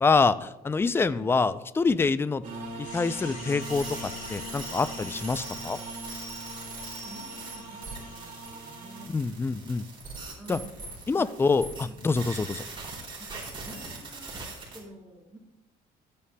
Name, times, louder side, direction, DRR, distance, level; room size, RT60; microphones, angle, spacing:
voice 1, 0.0-2.4 2.8-5.8 9.1-9.8 10.5-10.6 11.1-12.6, left 4 dB, 15° left, 14 dB, 0.4 m, -26 dB
voice 2, 1.0-1.3 5.2-5.4 7.0-9.2 10.3-10.8 11.1-11.4 11.8-12.0 13.2-14.3 14.7-15.4, right 1 dB, 5° right, -4 dB, 3.7 m, -48 dB
sound 1, 2.4-9.1, right 1 dB, 50° right, 2.3 m, -41 dB
sound 2, 2.8-9.0, left 3 dB, 55° left, 3.8 m, -46 dB
sound 3, 3.6-14.8, right 3 dB, 30° right, 3.3 m, -42 dB
14.0 x 8.5 x 2.2 m, 0.92 s
cardioid pair, 110°, 17 cm